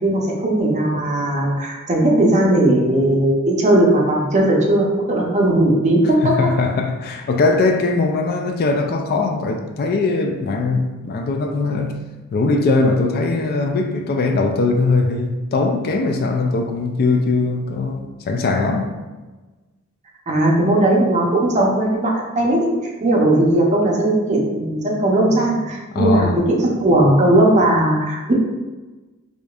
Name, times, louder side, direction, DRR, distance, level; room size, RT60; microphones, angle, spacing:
voice 1, 0.0-6.0 20.3-22.7 23.0-28.4, right 1 dB, 35° right, 0.6 m, -17 dB
voice 2, 6.2-12.0 12.3-18.0 18.3-19.0 25.3-26.4, left 3 dB, 45° left, 0.3 m, -20 dB
4.9 x 2.6 x 2.3 m
head